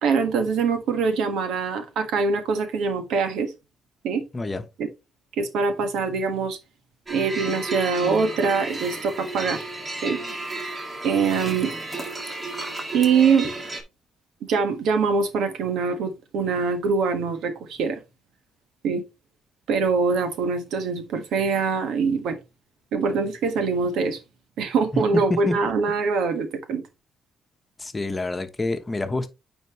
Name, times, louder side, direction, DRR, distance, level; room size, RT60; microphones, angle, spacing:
voice 1, 0.0-3.5 4.0-4.2 4.8-4.9 5.4-6.6 7.1-9.6 10.0-10.2 11.0-11.7 12.9-13.5 14.5-18.0 18.8-19.0 19.7-22.4 22.9-24.2 24.6-26.9, right 5 dB, 85° right, 1.4 m, -23 dB
sound 1, 7.1-13.8, right 2 dB, 30° right, 1.9 m, -33 dB
voice 2, 27.8-29.3, left 2 dB, 25° left, 1.1 m, -27 dB
9.1 x 4.4 x 3.0 m
cardioid pair, 90°, 0 cm